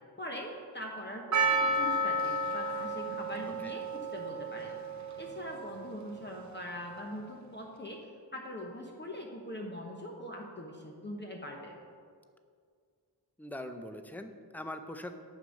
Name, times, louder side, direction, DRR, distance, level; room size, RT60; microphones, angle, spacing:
voice 1, 0.2-4.7 5.2-8.0 8.3-11.7, left 1 dB, 25° left, 0 dB, 0.9 m, -42 dB
Percussion, 1.3-6.2, right 1 dB, 45° right, 0.6 m, -32 dB
voice 2, 13.4-15.2, left 1 dB, 5° left, 7 dB, 0.5 m, -42 dB
9.3 x 7.0 x 6.4 m, 2.1 s
wide cardioid pair, 170°, 41 cm